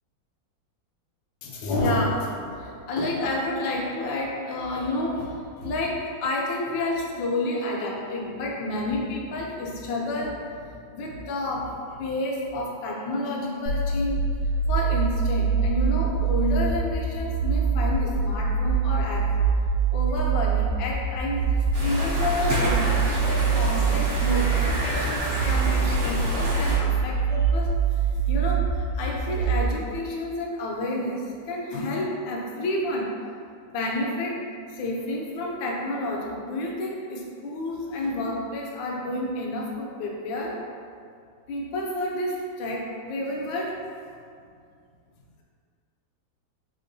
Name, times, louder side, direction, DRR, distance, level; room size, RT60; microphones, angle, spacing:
voice 1, 1.4-10.3 10.6-14.2 14.7-19.3 19.9-33.1 33.7-34.4 34.7-40.6 41.5-43.8, left 2 dB, 75° left, -2 dB, 1.3 m, -30 dB
sound 1, 13.7-29.7, right 6 dB, 80° right, 1.4 m, -24 dB
sound 2, 21.7-26.8, right 1 dB, 50° right, 1.0 m, -29 dB
3.8 x 3.5 x 2.6 m, 2.3 s
omnidirectional pair, 2.2 m